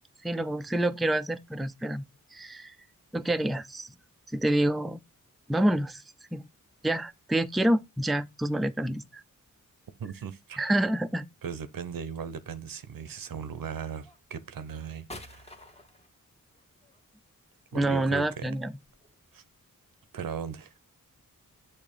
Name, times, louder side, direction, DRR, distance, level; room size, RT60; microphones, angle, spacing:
voice 1, 0.2-2.0 2.3-2.7 3.1-3.9 4.3-5.0 5.5-6.0 6.3-6.5 6.8-9.2 10.6-11.3 17.7-18.8, right 1 dB, ahead, 0.3 m, -27 dB
sound 1, 9.8-10.4 11.8-12.4 13.3-13.5 14.0-19.4, left 1 dB, 20° left, 1.0 m, -51 dB
voice 2, 10.0-10.7 11.4-15.7 17.7-18.5 19.3-19.4 20.1-20.7, right 7 dB, 90° right, 0.8 m, -38 dB
6.7 x 2.8 x 5.3 m
wide cardioid pair, 80°, 33 cm